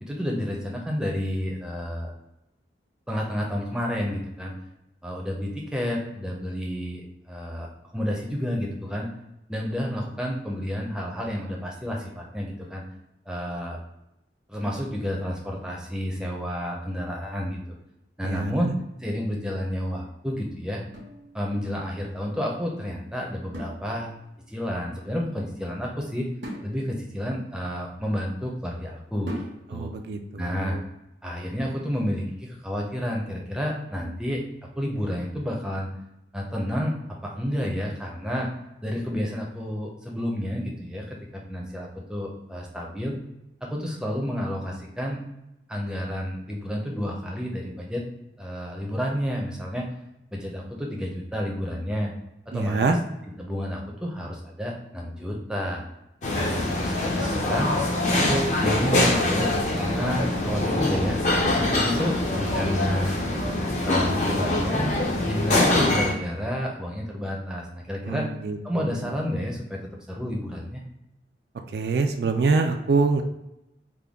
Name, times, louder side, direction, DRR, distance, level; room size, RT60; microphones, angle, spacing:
voice 1, 0.0-2.1 3.1-4.5 5.0-9.1 9.5-12.8 13.3-13.8 14.5-17.8 18.2-18.7 19.0-20.8 21.3-24.1 24.5-26.3 26.6-29.3 29.7-29.9 30.4-30.8 31.2-34.4 34.8-35.9 36.3-37.0 37.2-38.5 38.8-43.2 43.6-45.2 45.7-48.0 48.4-49.9 50.3-52.1 52.5-52.8 53.4-55.8 56.3-57.7 58.1-59.5 59.8-61.2 61.6-63.1 63.8-64.9 65.2-68.3 68.6-70.8, equal, 5° right, -2 dB, 0.5 m, -30 dB
voice 2, 18.2-18.7 29.7-30.8 52.5-53.0 68.1-69.1 71.7-73.2, right 4 dB, 60° right, 5 dB, 0.3 m, -25 dB
sound 1, 20.9-21.9 23.5-24.4 26.4-28.4 29.3-30.0, equal, 80° right, 0.9 m, -40 dB
sound 2, 56.2-66.1, left 2 dB, 40° left, 0.6 m, -24 dB
3.6 x 2.2 x 3.4 m, 0.89 s
head